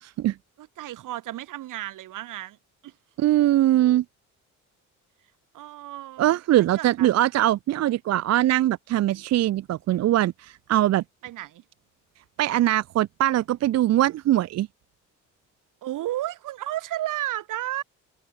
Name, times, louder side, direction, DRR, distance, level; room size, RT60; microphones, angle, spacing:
voice 1, 0.0-0.4 3.2-4.0 6.2-11.0 12.4-14.7, right 13 dB, 55° right, 0.5 m, -22 dB
voice 2, 0.8-2.6 2.8-2.9 5.5-6.4 6.7-7.1 11.2-11.6 15.8-17.8, right 14 dB, 80° right, 1.4 m, -32 dB
cardioid pair, 90°, 31 cm